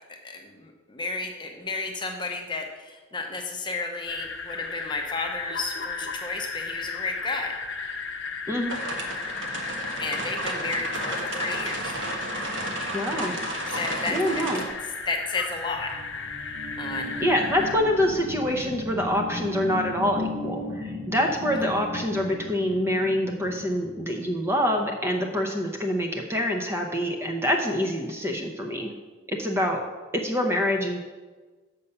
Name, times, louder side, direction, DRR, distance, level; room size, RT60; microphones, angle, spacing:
voice 1, 0.1-7.6 10.0-11.9 13.7-14.4 15.1-15.9 16.8-17.2, left 3 dB, 25° left, 2 dB, 0.8 m, -32 dB
sound 1, 4.0-17.8, left 4 dB, 70° left, 0.9 m, -35 dB
voice 2, 8.5-8.8 12.9-13.3 14.1-14.6 17.2-28.9 29.3-29.8 30.1-31.0, equal, 10° right, 2 dB, 0.7 m, -26 dB
sound 2, 8.7-14.7, right 2 dB, 65° right, 1.2 m, -33 dB
sound 3, 15.3-24.6, left 2 dB, 50° right, 1.9 m, -36 dB
6.9 x 5.5 x 6.8 m, 1.3 s
head